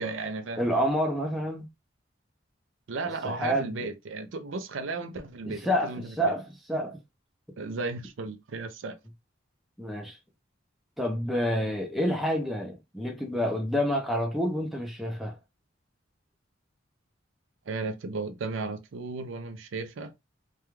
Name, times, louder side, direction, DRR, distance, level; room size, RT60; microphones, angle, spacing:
voice 1, 0.0-0.6 2.9-6.3 7.6-9.0 17.7-20.1, right 3 dB, 85° right, 0.5 m, -35 dB
voice 2, 0.6-1.7 3.0-3.9 5.4-7.0 9.8-10.2 11.0-15.4, equal, ahead, 0.6 m, -28 dB
2.3 x 2.2 x 3.0 m
head